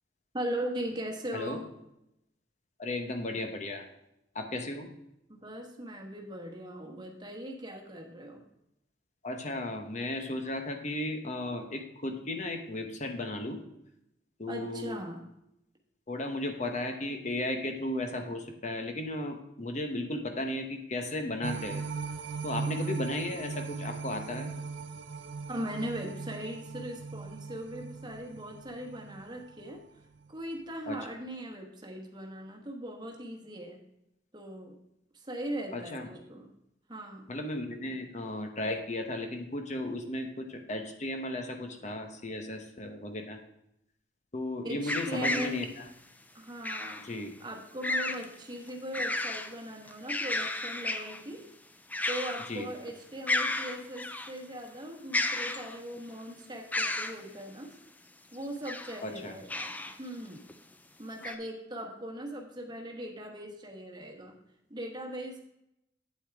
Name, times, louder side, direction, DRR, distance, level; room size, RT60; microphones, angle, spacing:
voice 1, 0.3-1.6 5.3-8.4 14.5-15.3 25.5-29.8 30.3-33.8 34.3-34.7 35.1-36.5 36.9-37.3 44.6-45.6 46.3-47.0 47.4-51.4 52.1-57.7 58.3-60.4 61.0-64.4 64.7-65.4, right 1 dB, 25° right, 1 dB, 1.3 m, -39 dB
voice 2, 1.3-1.6 2.8-3.8 4.3-4.9 9.2-13.6 14.4-15.0 16.1-21.8 22.4-24.5 30.9-31.0 35.7-36.1 37.3-43.4 44.3-45.8 47.0-47.3 52.5-52.7 59.0-59.4, left 1 dB, 40° left, 5 dB, 1.0 m, -35 dB
sound 1, 21.4-29.8 30.2-30.3, right 4 dB, 85° right, 0.6 m, -39 dB
sound 2, 44.9-45.6 46.6-47.1 47.8-48.3 48.7-49.5 49.9-51.2 51.9-52.6 52.9-53.0 53.3-54.3 55.1-56.0 56.7-57.2 58.4-59.0 59.5-60.0 60.5-60.6 61.2-61.4, left 2 dB, 10° left, 0.4 m, -32 dB
8.6 x 8.3 x 3.5 m, 0.83 s
head